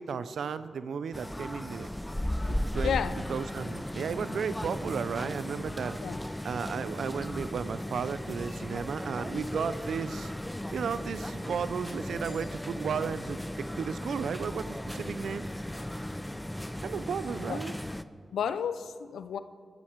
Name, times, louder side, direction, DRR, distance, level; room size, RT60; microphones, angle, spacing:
voice 1, 0.0-1.9 2.7-3.0 3.3-6.0 6.4-10.3 10.7-15.5 16.8-17.7, right 6 dB, 80° right, 14 dB, 0.6 m, -34 dB
sound 1, 1.1-18.0, left 1 dB, 10° left, 0.7 m, -36 dB
voice 2, 2.8-3.1 6.0-6.2 17.5-17.6 18.3-19.4, left 8 dB, 90° left, 12 dB, 0.6 m, -31 dB
20.0 x 15.0 x 4.6 m, 2.2 s
cardioid pair, 45°, 0 cm